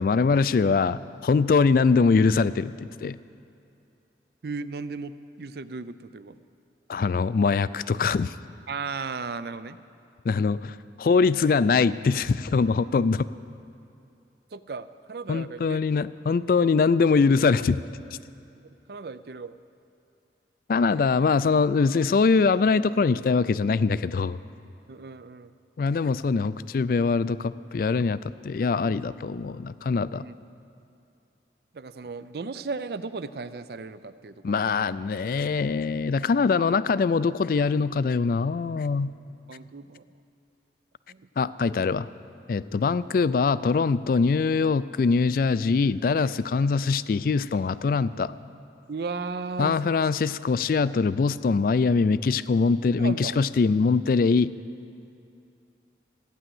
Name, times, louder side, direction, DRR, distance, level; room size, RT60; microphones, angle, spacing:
voice 1, 0.0-3.2 6.9-8.3 10.3-13.2 15.3-17.8 20.7-24.4 25.8-30.2 34.4-39.1 41.4-42.1 42.5-48.3 49.6-54.5, left 4 dB, 50° left, 16 dB, 0.3 m, -23 dB
voice 2, 4.4-6.4 8.7-9.8 14.5-15.8 18.6-19.6 24.9-25.5 28.8-29.0 30.1-30.3 31.7-34.8 36.6-36.7 39.5-40.0 41.1-41.3 48.9-49.9 53.0-53.4, right 4 dB, 60° right, 14 dB, 0.5 m, -36 dB
15.0 x 9.9 x 7.8 m, 2.6 s
head